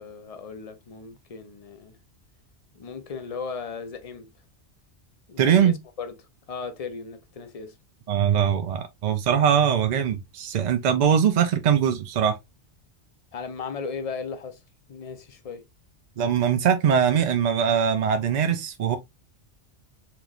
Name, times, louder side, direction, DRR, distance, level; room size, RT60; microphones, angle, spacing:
voice 1, 0.0-2.0 2.7-4.3 5.3-6.1 6.5-7.7 13.3-14.6 14.9-15.6, left 5 dB, 40° left, 0.6 m, -36 dB
voice 2, 5.4-5.8 8.1-12.4 16.2-19.0, right 8 dB, 60° right, 0.4 m, -21 dB
4.5 x 3.0 x 2.3 m
omnidirectional pair, 1.2 m